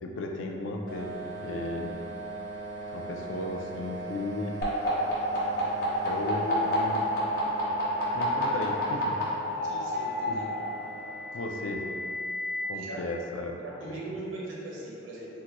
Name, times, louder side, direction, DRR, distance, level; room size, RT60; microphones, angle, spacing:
voice 1, 0.0-1.9 2.9-4.6 6.0-7.1 8.1-9.2 10.3-10.4 11.3-11.9 12.7-13.6 14.1-14.2, left 2 dB, 80° left, 1 dB, 0.4 m, -35 dB
sound 1, 0.9-12.2, right 2 dB, 55° right, 0.4 m, -41 dB
sound 2, 4.6-9.2 10.4-12.6, left 2 dB, 50° left, 0.8 m, -32 dB
sound 3, 6.0-11.5, left 2 dB, 15° left, 0.4 m, -38 dB
voice 2, 9.6-10.4 12.7-13.0 13.6-15.4, right 2 dB, 90° right, -5 dB, 0.8 m, -40 dB
3.8 x 2.2 x 2.9 m, 2.5 s
head